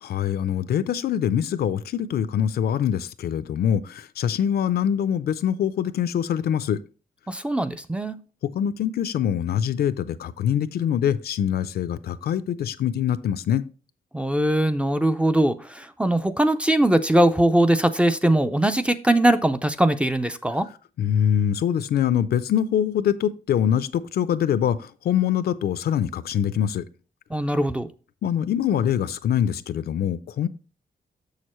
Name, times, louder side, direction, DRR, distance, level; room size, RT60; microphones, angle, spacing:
voice 1, 0.0-6.8 8.5-13.6 21.0-26.8 28.2-30.5, left 9 dB, 80° left, 0.5 m, -24 dB
voice 2, 7.3-8.2 14.1-20.7 27.3-27.9, right 1 dB, 5° right, 0.3 m, -21 dB
7.1 x 6.5 x 3.0 m
wide cardioid pair, 165°, 16 cm